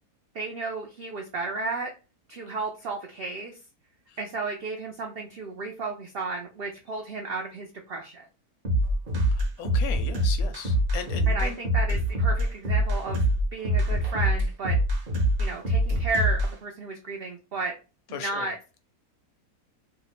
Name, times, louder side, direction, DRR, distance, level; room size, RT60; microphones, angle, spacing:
voice 1, 0.3-1.9 2.3-3.6 4.2-8.3 11.3-14.8 15.4-17.7 18.1-18.6, right 3 dB, 85° right, 2 dB, 0.5 m, -33 dB
sound 1, 8.6-16.5, right 1 dB, 45° right, 0.8 m, -24 dB
voice 2, 9.3-11.6 18.1-18.5, left 7 dB, 75° left, 7 dB, 1.0 m, -37 dB
2.9 x 2.2 x 4.0 m, 0.32 s
omnidirectional pair, 1.7 m